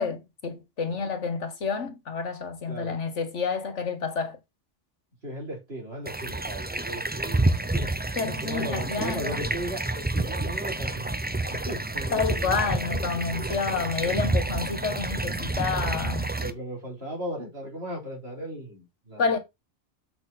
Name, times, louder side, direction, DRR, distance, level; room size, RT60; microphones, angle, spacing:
voice 1, 0.0-4.4 8.2-9.5 12.1-16.3 19.2-19.4, left 5 dB, 80° left, 1.7 m, -29 dB
voice 2, 2.7-3.0 5.2-7.9 8.4-12.9 13.5-14.4 16.4-19.4, right 1 dB, 60° right, 4.2 m, -37 dB
sound 1, 6.1-16.5, right 2 dB, 15° right, 0.4 m, -29 dB
6.9 x 6.4 x 4.2 m
omnidirectional pair, 1.2 m